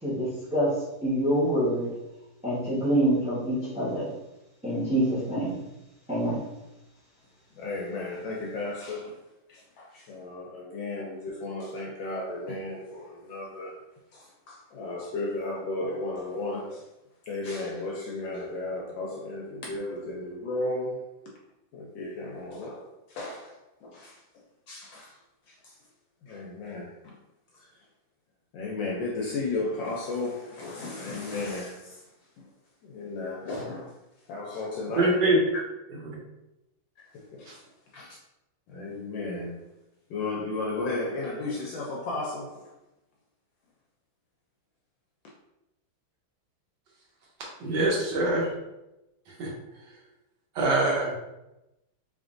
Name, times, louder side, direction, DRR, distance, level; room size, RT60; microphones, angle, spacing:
voice 1, 0.0-1.9 2.4-4.1 4.6-5.6 6.1-6.4, right 1 dB, 10° right, 0.4 m, -26 dB
voice 2, 7.6-9.2 9.5-13.8 14.1-16.9 17.3-21.1 21.7-24.2 24.7-25.2 25.5-25.8 26.2-27.1 27.5-27.7 28.5-32.0 32.8-33.9 34.3-35.2 37.0-37.6 37.9-38.2 38.7-39.6 40.1-42.7, left 2 dB, 75° left, 1.2 m, -34 dB
voice 3, 35.0-35.4 35.9-36.1 47.6-48.5 49.3-49.5 50.5-51.2, right 2 dB, 60° right, 1.5 m, -24 dB
3.8 x 3.4 x 2.5 m
omnidirectional pair, 2.3 m